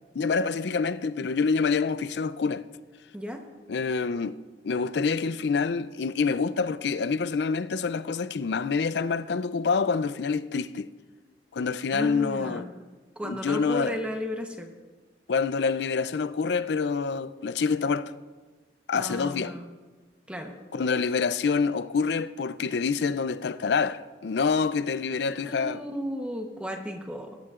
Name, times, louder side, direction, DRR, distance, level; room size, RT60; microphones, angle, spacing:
voice 1, 0.1-2.6 3.7-4.4 4.6-10.9 11.5-12.7 13.2-14.0 15.3-18.1 18.9-19.5 20.7-25.8, left 5 dB, 65° left, 0.4 m, -27 dB
voice 2, 11.9-12.7 13.2-14.7 18.9-19.7 20.3-20.5 25.4-27.4, equal, 5° right, 0.9 m, -34 dB
20.0 x 10.5 x 2.5 m
head